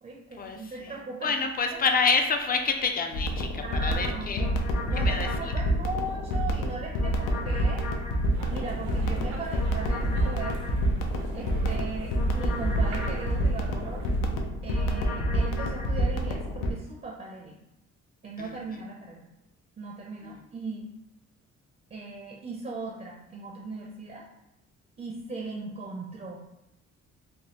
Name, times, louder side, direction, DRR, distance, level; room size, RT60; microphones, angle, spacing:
voice 1, 0.0-1.4 3.6-8.0 8.3-10.8 11.3-14.1 14.6-17.6 18.2-19.2 19.8-20.9 21.9-24.2 25.0-26.4, right 3 dB, 30° right, -1 dB, 0.5 m, -38 dB
voice 2, 1.2-4.5 5.0-5.3 11.3-11.5 18.4-18.5 20.2-20.4, left 4 dB, 30° left, 5 dB, 0.4 m, -27 dB
sound 1, 3.1-16.7, equal, 85° left, 0.5 m, -28 dB
sound 2, 8.3-14.3, right 2 dB, 80° right, 0.7 m, -37 dB
3.4 x 2.1 x 2.8 m, 0.90 s
cardioid pair, 90°, 30 cm